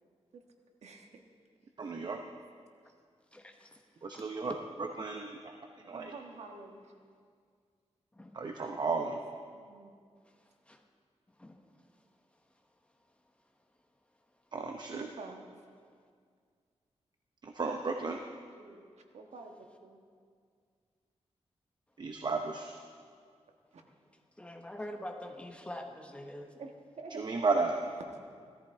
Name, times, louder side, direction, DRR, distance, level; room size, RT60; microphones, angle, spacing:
voice 1, 0.8-1.2 2.0-2.3 5.9-6.9 9.5-9.9 14.9-15.4 18.5-18.9 19.1-20.0 23.7-23.8 26.6-27.5, right 3 dB, 80° right, 3 dB, 1.4 m, -48 dB
voice 2, 1.8-2.2 4.0-5.5 5.8-6.1 8.3-9.2 14.5-15.0 17.4-18.2 22.0-22.8 27.1-27.8, right 4 dB, 40° right, 4 dB, 0.7 m, -33 dB
voice 3, 3.3-3.8 4.1-4.4 8.1-8.4 10.2-10.8 11.4-11.6 24.4-26.6, left 1 dB, 10° left, 3 dB, 1.1 m, -45 dB
16.5 x 14.0 x 4.5 m, 2.1 s
wide cardioid pair, 170°, 11 cm